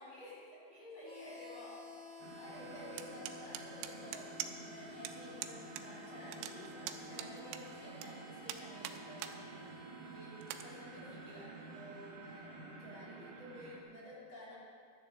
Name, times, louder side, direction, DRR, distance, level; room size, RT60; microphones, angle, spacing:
voice 1, 0.0-14.5, left 1 dB, 30° left, -8 dB, 3.8 m, -52 dB
Harmonica, 1.0-13.6, left 4 dB, 65° left, 3.8 m, -55 dB
sound 1, 2.2-13.8, right 5 dB, 65° right, 2.3 m, -51 dB
sound 2, 3.0-4.7 5.0-5.1 5.4-5.8 6.1-8.1 8.5-9.4 9.8-9.9 10.4-10.6, right 11 dB, 85° right, 2.7 m, -43 dB
15.5 x 11.5 x 4.0 m, 2.2 s
omnidirectional pair, 4.8 m